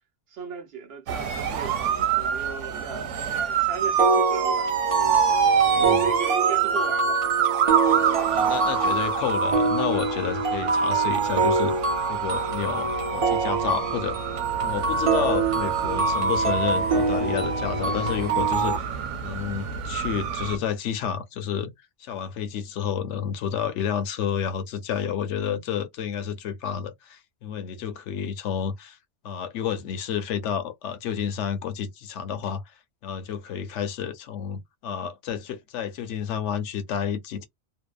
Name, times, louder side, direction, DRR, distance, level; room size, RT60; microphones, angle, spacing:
voice 1, 0.3-4.7 5.0-5.1 5.6-8.5, right 5 dB, 65° right, 0.8 m, -37 dB
sound 1, 1.1-20.6, right 8 dB, 90° right, 0.9 m, -27 dB
sound 2, 4.0-18.8, right 4 dB, 45° right, 0.5 m, -25 dB
voice 2, 5.7-6.1 8.3-11.8 12.1-14.2 14.6-18.9 19.2-21.7 22.0-29.0 29.2-32.7 33.0-37.4, left 8 dB, 75° left, 0.9 m, -30 dB
2.7 x 2.0 x 2.2 m
omnidirectional pair, 1.2 m